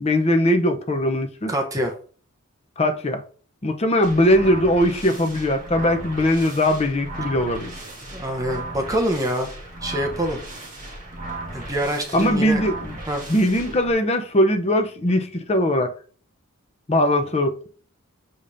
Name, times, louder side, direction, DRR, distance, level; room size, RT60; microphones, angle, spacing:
voice 1, 0.0-1.5 2.8-3.2 3.6-7.7 12.1-13.0 13.3-15.9 16.9-17.7, left 1 dB, 30° left, 0.7 m, -20 dB
voice 2, 1.5-1.9 8.1-9.5 9.8-10.4 11.5-12.6 13.1-13.2, right 1 dB, 15° right, 0.7 m, -25 dB
sound 1, 4.0-13.9, right 2 dB, 35° right, 2.0 m, -36 dB
7.1 x 5.0 x 2.6 m
head